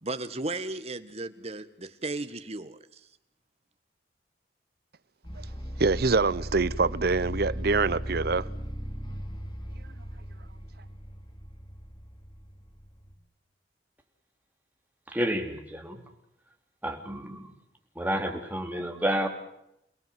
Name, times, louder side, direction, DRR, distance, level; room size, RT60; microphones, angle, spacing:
voice 1, 0.0-3.0, right 2 dB, 35° right, 1.6 m, -35 dB
sound 1, 5.2-13.1, equal, 25° left, 3.0 m, -38 dB
voice 2, 5.8-8.5, right 4 dB, 60° right, 0.8 m, -25 dB
voice 3, 15.1-16.0 16.8-17.5 17.9-19.3, equal, 10° right, 3.4 m, -30 dB
29.5 x 18.0 x 7.7 m
head